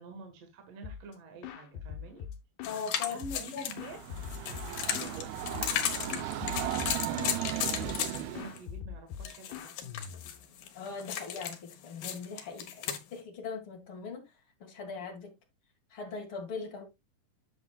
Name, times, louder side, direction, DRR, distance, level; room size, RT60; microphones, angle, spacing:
voice 1, 0.0-2.3 2.6-4.0 4.8-9.7, right 3 dB, 55° right, 2.1 m, -47 dB
sound 1, 0.8-1.1 1.4-2.8 3.2-5.2 5.5-5.9 6.1-7.4 7.8-8.1 8.3-10.4, left 8 dB, 85° left, 3.1 m, -42 dB
sound 2, 2.6-8.6 9.2-13.0, left 9 dB, 70° left, 2.7 m, -36 dB
voice 2, 2.7-3.2 3.5-3.7 10.7-12.8 13.1-14.3 14.6-15.3 15.9-16.8, left 5 dB, 40° left, 2.3 m, -40 dB
Train, 3.7-8.6, right 12 dB, 80° right, 2.7 m, -36 dB
10.5 x 7.0 x 2.3 m
omnidirectional pair, 4.3 m